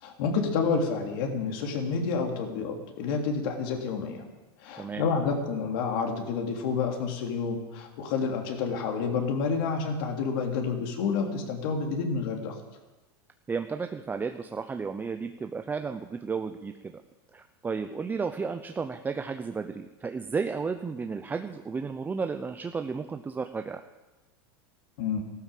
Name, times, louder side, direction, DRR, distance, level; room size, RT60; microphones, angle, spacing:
voice 1, 0.0-4.2 4.6-12.5 25.0-25.2, left 5 dB, 65° left, 2 dB, 3.3 m, -29 dB
voice 2, 4.8-5.1 13.5-17.0 17.3-23.8, right 5 dB, 15° right, 7 dB, 0.7 m, -33 dB
15.0 x 12.5 x 7.7 m, 1.1 s
supercardioid pair, 125°, 13 cm